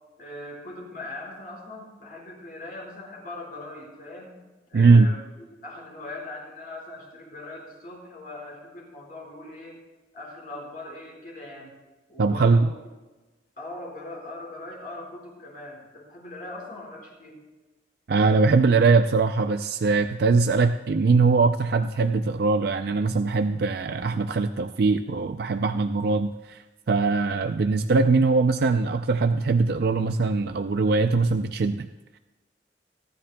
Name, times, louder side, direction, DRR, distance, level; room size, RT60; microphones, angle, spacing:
voice 1, 0.2-4.4 4.7-5.2 5.6-9.8 10.1-11.7 12.1-12.8 13.6-17.4, left 2 dB, 50° left, -2 dB, 4.9 m, -40 dB
voice 2, 4.7-5.1 12.2-12.7 18.1-31.9, right 4 dB, 60° right, 8 dB, 0.4 m, -21 dB
28.5 x 10.5 x 2.2 m, 1.2 s
head